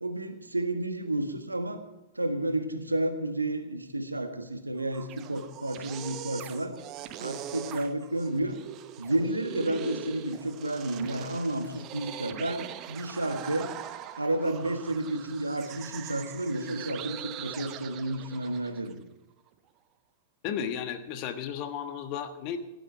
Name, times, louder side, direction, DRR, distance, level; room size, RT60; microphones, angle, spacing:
voice 1, 0.0-1.8 2.1-6.7 7.2-8.6 9.0-13.7 14.2-19.0, right 1 dB, 85° right, 7 dB, 1.5 m, -31 dB
sound 1, 4.8-18.9, right 11 dB, 35° right, 0.8 m, -42 dB
voice 2, 20.4-22.6, left 8 dB, 40° left, 8 dB, 1.3 m, -34 dB
16.5 x 11.0 x 4.7 m, 1.0 s
figure-of-eight pair, 105°, 0 cm